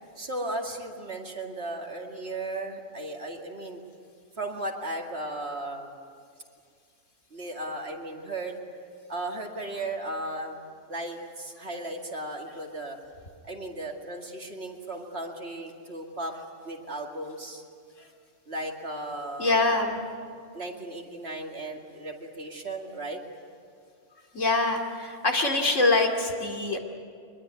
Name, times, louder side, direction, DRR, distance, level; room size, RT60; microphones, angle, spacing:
voice 1, 0.2-3.8 4.4-5.9 7.3-8.6 9.1-10.6 10.9-13.0 13.4-16.3 16.6-17.6 18.5-19.6 20.5-23.2, right 1 dB, 55° right, 1 dB, 2.6 m, -35 dB
voice 2, 19.4-20.0 24.3-26.8, left 2 dB, 70° left, 3 dB, 2.9 m, -24 dB
23.5 x 22.0 x 9.5 m, 2.2 s
omnidirectional pair, 1.3 m